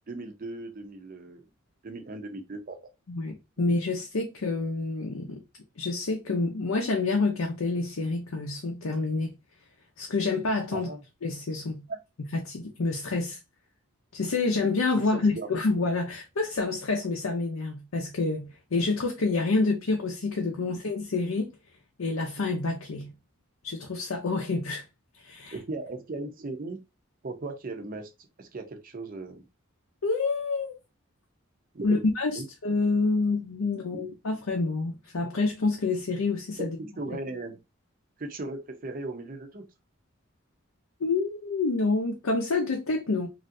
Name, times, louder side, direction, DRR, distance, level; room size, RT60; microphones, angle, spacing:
voice 1, 0.1-1.5 1.8-2.8 10.7-11.0 11.9-12.0 15.1-15.5 25.5-26.8 27.2-29.4 31.7-32.0 32.4-32.5 33.9-34.0 36.6-37.6 38.2-39.7, right 2 dB, 40° right, 0.5 m, -37 dB
voice 2, 3.1-5.4 5.8-9.3 10.0-10.9 11.2-11.8 12.3-13.4 14.1-21.5 22.0-23.1 23.6-24.8 25.2-25.5 30.0-30.8 31.8-36.7 41.0-43.3, left 3 dB, 80° left, 0.6 m, -28 dB
3.2 x 2.5 x 2.6 m
head